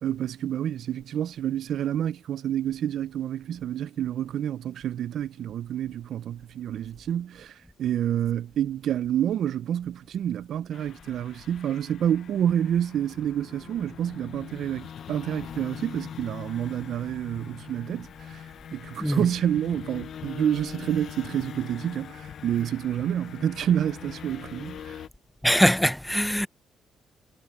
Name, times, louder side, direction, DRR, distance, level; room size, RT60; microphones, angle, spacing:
voice 1, 0.0-18.4 18.7-25.0, right 10 dB, 70° right, 0.5 m, -28 dB
sound 1, 10.7-25.1, left 8 dB, 60° left, 0.7 m, -42 dB
voice 2, 25.4-26.5, equal, 5° left, 0.5 m, -22 dB
cardioid pair, 90°, 0 cm